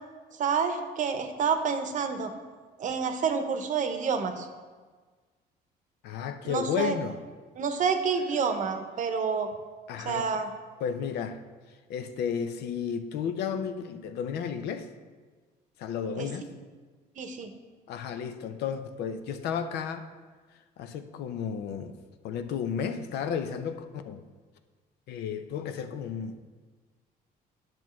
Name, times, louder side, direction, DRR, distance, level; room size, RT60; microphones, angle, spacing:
voice 1, 0.4-2.3 2.8-4.5 6.4-7.0 7.6-9.5 10.0-10.5 16.1-16.3 17.2-17.5, right 6 dB, 50° right, 7 dB, 0.8 m, -28 dB
voice 2, 6.0-7.2 9.9-10.3 10.8-11.4 11.9-14.9 15.8-16.5 17.9-20.1 20.8-21.9 22.2-24.2 25.1-26.6, left 7 dB, 75° left, 9 dB, 0.6 m, -33 dB
10.5 x 6.1 x 3.1 m, 1.4 s
cardioid pair, 110°, 17 cm